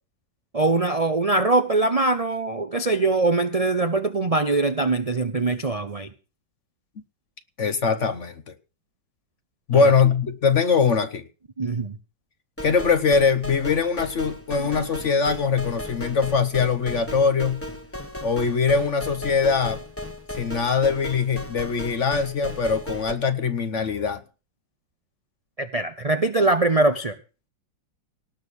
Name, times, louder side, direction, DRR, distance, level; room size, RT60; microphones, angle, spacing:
voice 1, 0.5-6.1 9.7-9.9 11.6-12.0 14.7-14.8 25.6-27.1, right 2 dB, 50° right, 8 dB, 0.4 m, -22 dB
voice 2, 7.6-8.4 9.7-11.2 12.6-17.6 18.2-19.8 20.3-24.2, left 5 dB, 50° left, 11 dB, 1.0 m, -22 dB
sound 1, 12.6-23.1, left 1 dB, 10° left, 1.2 m, -36 dB
18.5 x 6.4 x 7.1 m, 0.35 s
omnidirectional pair, 2.1 m